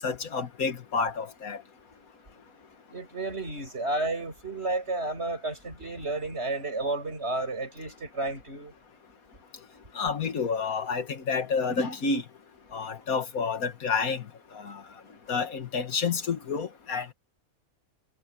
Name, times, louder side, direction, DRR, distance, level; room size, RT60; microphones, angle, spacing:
voice 1, 0.0-1.6 10.0-12.2 12.7-14.2 14.5-14.8 15.3-17.1, left 5 dB, 75° left, 2.0 m, -29 dB
voice 2, 2.9-8.7, right 2 dB, 45° right, 7.0 m, -32 dB
omnidirectional pair, 1.5 m